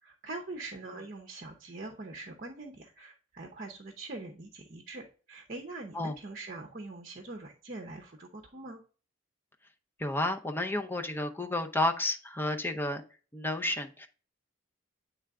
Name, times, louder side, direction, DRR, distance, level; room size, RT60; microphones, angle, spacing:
voice 1, 0.0-8.8, right 2 dB, 45° right, 3 dB, 0.7 m, -43 dB
voice 2, 10.0-13.0 13.3-14.1, left 2 dB, 10° left, 5 dB, 0.6 m, -31 dB
8.7 x 3.4 x 3.5 m, 0.39 s
head